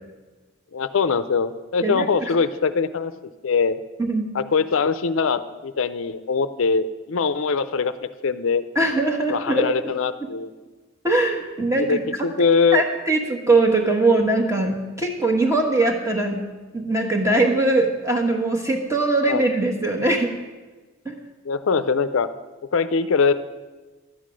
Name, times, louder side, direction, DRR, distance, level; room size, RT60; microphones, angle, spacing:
voice 1, 0.7-3.1 3.4-3.8 4.3-7.9 8.2-8.6 9.3-10.5 11.8-12.8 19.3-19.4 21.5-22.3 22.7-23.3, left 5 dB, 70° left, 12 dB, 0.5 m, -22 dB
voice 2, 1.8-2.3 4.0-4.3 8.7-9.9 11.0-12.0 12.7-16.4 16.7-20.3 21.0-21.1, right 2 dB, 15° right, 2 dB, 1.3 m, -21 dB
11.5 x 8.5 x 6.2 m, 1.3 s
head